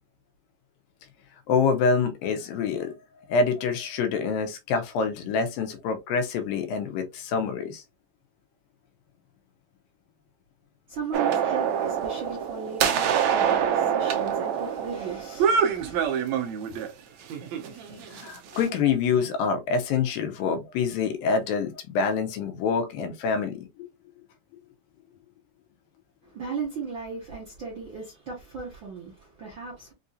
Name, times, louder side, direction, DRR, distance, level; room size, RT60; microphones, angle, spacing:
voice 1, 1.5-2.9 3.3-7.8 18.1-23.7, left 5 dB, 85° left, 2.5 m, -26 dB
voice 2, 10.9-16.1 26.2-29.9, right 5 dB, 60° right, 1.2 m, -36 dB
sound 1, 11.1-16.9 17.3-18.6, right 8 dB, 75° right, 1.6 m, -26 dB
5.8 x 2.7 x 2.4 m
omnidirectional pair, 4.1 m